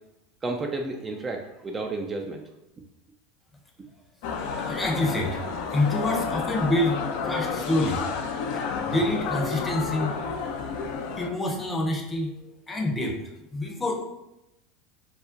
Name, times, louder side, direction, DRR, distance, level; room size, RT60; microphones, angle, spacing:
voice 1, 0.4-2.4, right 2 dB, 25° right, 2 dB, 0.3 m, -31 dB
sound 1, 4.2-11.3, left 5 dB, 65° left, 0.3 m, -30 dB
voice 2, 4.6-5.4 5.7-8.0 8.5-10.2 11.0-12.4 12.7-14.0, left 1 dB, 15° left, 1 dB, 0.6 m, -27 dB
2.5 x 2.1 x 3.7 m, 0.91 s
hypercardioid pair, 80°, 0 cm